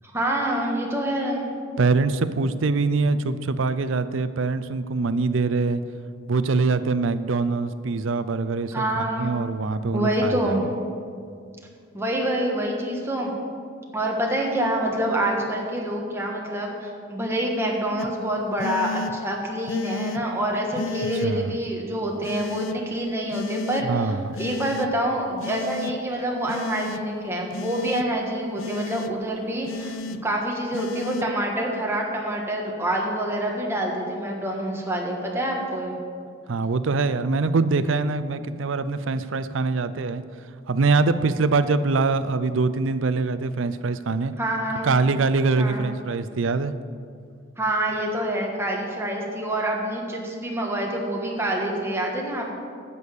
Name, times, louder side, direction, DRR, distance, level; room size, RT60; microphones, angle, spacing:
voice 1, 0.1-1.5 8.7-9.3 9.9-10.6 11.9-13.3 13.9-35.9 44.4-44.9 45.6-45.9 47.6-52.4, right 1 dB, 15° right, -1 dB, 1.5 m, -26 dB
voice 2, 1.8-5.8 6.3-10.6 21.2-21.6 23.8-24.4 36.5-40.2 40.7-44.3 44.8-46.7, right 3 dB, 70° right, 13 dB, 0.5 m, -23 dB
sound 1, 18.0-18.1 18.6-19.1 19.7-20.2 20.7-21.3 22.2-22.7 23.3-23.8 24.3-24.9 25.4-25.9 26.5-27.0 27.5-28.0 28.6-29.1 29.7-30.2 30.7-31.2, left 5 dB, 75° left, 0.4 m, -33 dB
9.5 x 7.0 x 8.3 m, 2.3 s
head